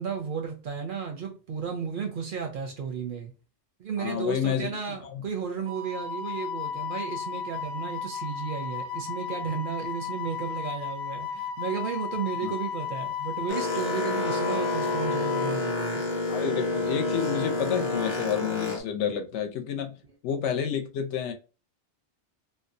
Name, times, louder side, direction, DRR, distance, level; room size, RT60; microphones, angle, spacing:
voice 1, 0.0-3.3 3.8-16.0, right 6 dB, 60° right, 0.6 m, -33 dB
voice 2, 4.0-5.2 12.4-12.5 16.3-20.0 20.2-21.3, left 8 dB, 80° left, 0.9 m, -30 dB
Wind instrument woodwind instrument, 5.6-15.5, left 7 dB, 80° right, 0.9 m, -34 dB
Boat Water vehicle, 13.5-18.8, left 3 dB, 40° left, 0.6 m, -28 dB
2.6 x 2.1 x 2.5 m
omnidirectional pair, 1.2 m